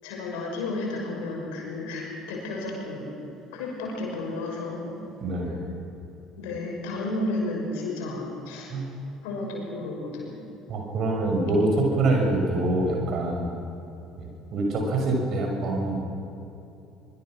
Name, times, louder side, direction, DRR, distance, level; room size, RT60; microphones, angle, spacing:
voice 1, 0.0-3.1 3.5-5.0 6.4-8.7 9.2-10.4, left 2 dB, 65° left, -1 dB, 6.1 m, -32 dB
voice 2, 5.2-5.6 8.7-8.9 10.7-13.5 14.2-16.0, right 2 dB, 50° right, 1 dB, 6.3 m, -25 dB
24.5 x 23.5 x 6.3 m, 2.9 s
figure-of-eight pair, 55°, 0 cm